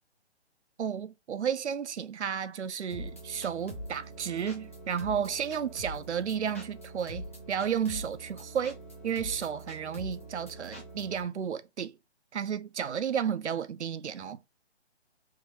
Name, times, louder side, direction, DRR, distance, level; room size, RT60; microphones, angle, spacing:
voice 1, 0.8-8.8 9.0-11.9 12.3-14.4, right 8 dB, 80° right, 0.7 m, -32 dB
sound 1, 2.9-11.2, right 1 dB, 15° left, 0.5 m, -43 dB
3.6 x 2.6 x 4.5 m
hypercardioid pair, 155°, 34 cm